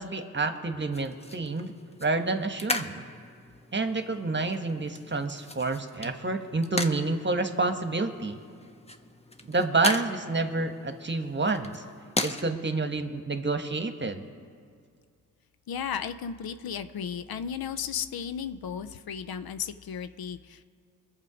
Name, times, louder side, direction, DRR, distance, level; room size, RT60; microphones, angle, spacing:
voice 1, 0.0-1.7 2.0-3.0 3.7-8.4 9.4-11.8 12.2-14.3, right 3 dB, 30° right, 7 dB, 1.3 m, -29 dB
sound 1, 0.9-12.4, left 2 dB, 15° left, 1.0 m, -38 dB
voice 2, 15.7-20.6, left 7 dB, 75° left, 11 dB, 0.7 m, -34 dB
22.5 x 7.5 x 5.0 m, 2.2 s
supercardioid pair, 40°, 37 cm